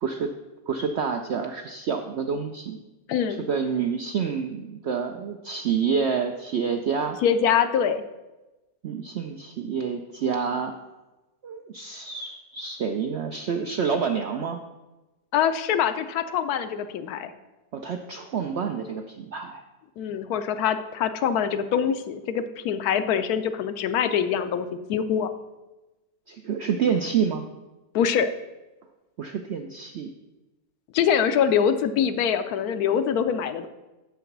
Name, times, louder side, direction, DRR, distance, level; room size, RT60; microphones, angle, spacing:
voice 1, 0.0-0.3 0.7-2.8 3.4-7.2 8.8-10.7 11.4-14.6 17.7-19.6 26.3-27.5 29.2-30.1, right 6 dB, 70° right, 5 dB, 0.6 m, -28 dB
voice 2, 3.1-3.5 7.2-8.0 15.3-17.3 20.0-25.3 27.9-28.3 30.9-33.7, left 8 dB, 75° left, 10 dB, 1.1 m, -24 dB
7.1 x 6.8 x 5.9 m, 1.1 s
omnidirectional pair, 1.7 m